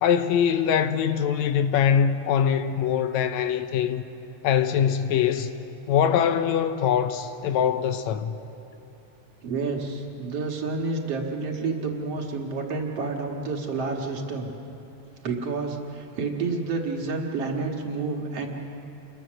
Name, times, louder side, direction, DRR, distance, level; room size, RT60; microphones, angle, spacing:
voice 1, 0.0-4.0 4.4-5.5 5.9-8.3, left 8 dB, 75° left, 1.9 m, -23 dB
voice 2, 9.4-14.5 15.2-18.5, right 4 dB, 55° right, 2.5 m, -29 dB
28.0 x 21.5 x 6.4 m
omnidirectional pair, 3.4 m